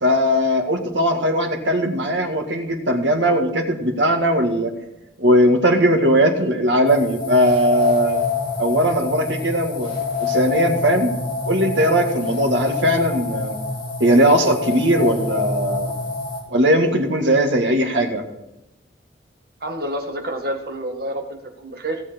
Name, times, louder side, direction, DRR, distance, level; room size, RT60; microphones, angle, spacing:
voice 1, 0.0-4.7 5.2-8.2 8.6-11.1 11.5-13.6 14.0-15.9 16.5-18.2, equal, 90° right, 3 dB, 1.9 m, -19 dB
sound 1, 6.8-16.4, left 4 dB, 30° left, 3.3 m, -26 dB
voice 2, 19.6-22.0, right 1 dB, 55° right, 3 dB, 1.8 m, -28 dB
16.5 x 7.5 x 4.5 m, 0.93 s
head